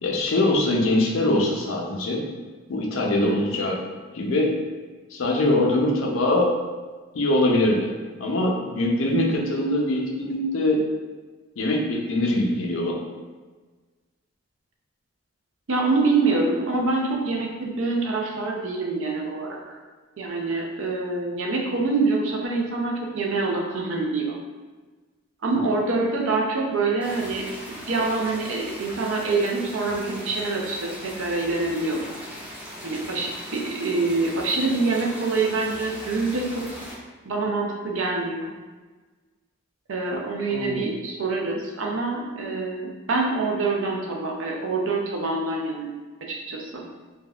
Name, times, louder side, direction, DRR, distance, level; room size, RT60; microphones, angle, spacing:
voice 1, 0.0-2.2 2.7-3.8 4.1-4.5 5.1-6.5 7.1-7.9 8.2-10.8 11.6-13.0 40.5-40.9, left 1 dB, 75° left, 0 dB, 0.5 m, -22 dB
voice 2, 3.3-3.6 15.7-19.8 20.2-24.4 25.4-32.2 32.8-36.7 37.3-38.5 39.9-45.9 46.2-46.8, right 3 dB, 70° right, 0 dB, 0.5 m, -26 dB
sound 1, 27.0-36.9, equal, 5° right, 0.4 m, -39 dB
3.4 x 2.2 x 2.3 m, 1.3 s
head